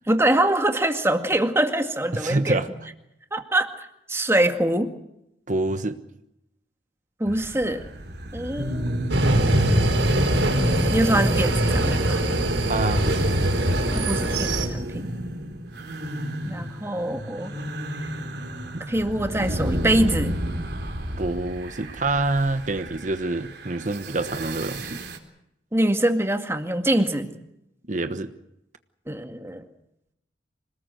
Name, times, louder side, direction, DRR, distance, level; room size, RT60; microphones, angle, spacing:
voice 1, 0.1-2.7 3.3-3.7 4.1-4.9 7.2-7.9 8.3-9.1 10.9-12.2 13.9-15.1 16.4-17.5 18.9-20.3 25.7-27.3 29.1-29.7, right 1 dB, 15° right, 6 dB, 2.0 m, -24 dB
voice 2, 2.1-2.7 5.5-6.0 12.7-13.3 18.7-18.9 21.2-25.0 27.9-28.3, right 2 dB, 45° right, 10 dB, 1.2 m, -26 dB
sound 1, 7.3-25.2, right 1 dB, 60° right, 4.0 m, -30 dB
sound 2, 9.1-14.7, right 1 dB, 75° right, 4.9 m, -22 dB
26.5 x 19.5 x 7.9 m, 0.83 s
head